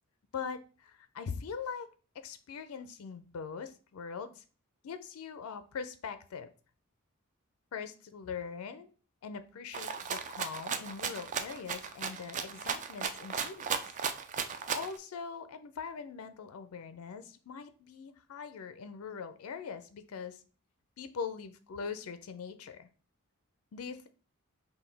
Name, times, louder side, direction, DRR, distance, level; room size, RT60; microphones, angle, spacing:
voice 1, 0.3-1.9 2.2-4.4 4.8-6.5 7.7-8.9 9.2-13.7 14.7-20.4 21.0-22.9 23.7-24.1, left 6 dB, 80° left, 10 dB, 0.4 m, -42 dB
Rattle (instrument), 9.7-15.0, right 6 dB, 35° right, 0.3 m, -36 dB
5.6 x 2.2 x 3.3 m, 0.37 s
head